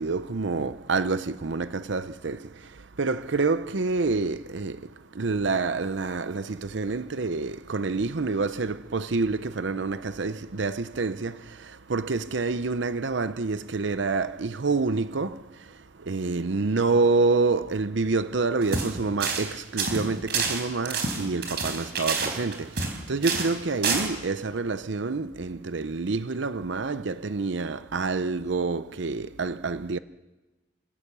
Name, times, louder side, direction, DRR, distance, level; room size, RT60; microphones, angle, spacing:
voice 1, 0.0-30.0, right 3 dB, 70° right, 0.7 m, -28 dB
sound 1, 18.6-18.9 19.2-19.5 19.8-23.0 23.2-23.5 23.8-24.1, right 4 dB, 55° right, 4.3 m, -28 dB
28.5 x 17.5 x 6.9 m
head